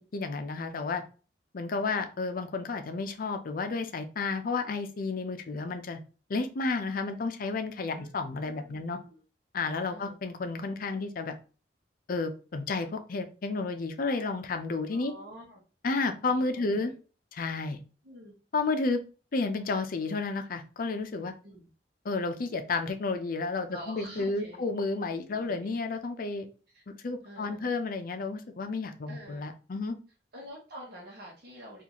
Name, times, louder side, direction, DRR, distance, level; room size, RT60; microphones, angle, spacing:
voice 1, 0.1-1.0 1.5-6.0 6.3-9.0 9.5-11.4 12.1-15.1 15.8-16.9 17.3-17.8 18.5-19.0 19.3-21.3 22.0-26.5 26.9-30.0, left 3 dB, 55° left, 7 dB, 0.5 m, -31 dB
voice 2, 8.4-9.2 9.9-10.1 14.9-15.6 16.3-16.9 18.0-18.4 21.4-21.7 23.7-24.7 25.3-25.7 26.7-26.8 27.2-27.9 29.1-29.4 30.3-31.8, equal, 60° right, -3 dB, 0.9 m, -47 dB
3.9 x 2.5 x 2.9 m, 0.36 s
head